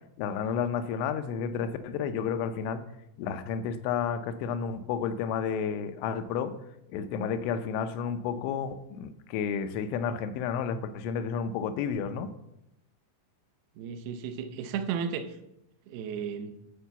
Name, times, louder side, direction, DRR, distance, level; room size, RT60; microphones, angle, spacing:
voice 1, 0.2-2.8 3.2-6.5 6.9-12.3, left 7 dB, 80° left, 3.0 m, -31 dB
voice 2, 13.8-15.4 15.9-16.6, right 7 dB, 80° right, 2.3 m, -34 dB
12.0 x 4.6 x 6.9 m
omnidirectional pair, 5.4 m